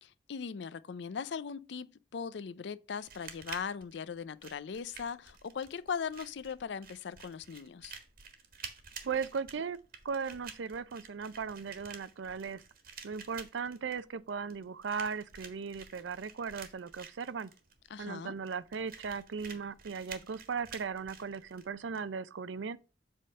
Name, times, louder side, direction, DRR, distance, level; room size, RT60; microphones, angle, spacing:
voice 1, 0.0-8.0 17.9-18.3, left 6 dB, 65° left, 0.4 m, -39 dB
sound 1, 3.0-22.0, right 6 dB, 50° right, 1.3 m, -50 dB
voice 2, 9.0-9.8 10.0-12.6 13.0-17.5 18.0-22.8, right 5 dB, 80° right, 0.5 m, -37 dB
7.5 x 3.6 x 5.4 m
head